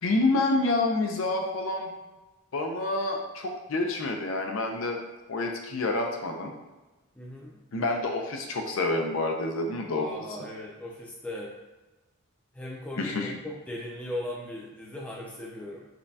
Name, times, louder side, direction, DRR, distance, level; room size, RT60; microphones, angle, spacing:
voice 1, 0.0-1.9 2.5-5.0 5.3-6.5 7.7-10.1 13.0-13.4, left 2 dB, 65° left, 3 dB, 0.5 m, -28 dB
voice 2, 7.1-7.6 9.9-11.6 12.5-15.9, left 1 dB, 5° left, -3 dB, 0.4 m, -38 dB
5.2 x 2.2 x 2.7 m, 1.1 s
head